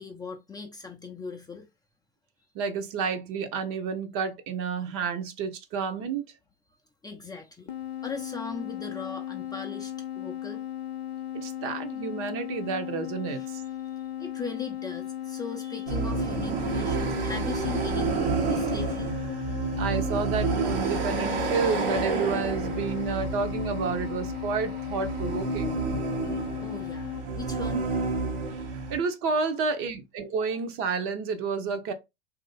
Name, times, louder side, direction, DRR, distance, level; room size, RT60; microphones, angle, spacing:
voice 1, 0.0-1.7 7.0-7.7 8.0-10.6 13.3-13.5 13.8-19.1 26.3-27.9, left 4 dB, 15° left, 0.5 m, -39 dB
voice 2, 2.5-6.3 11.3-13.6 19.8-25.8 28.9-31.9, right 5 dB, 45° right, 0.9 m, -30 dB
sound 1, 7.7-27.3, left 11 dB, 85° left, 0.6 m, -36 dB
sound 2, 15.9-29.0, right 4 dB, 70° right, 1.2 m, -30 dB
3.0 x 2.8 x 4.0 m
hypercardioid pair, 90°, 30 cm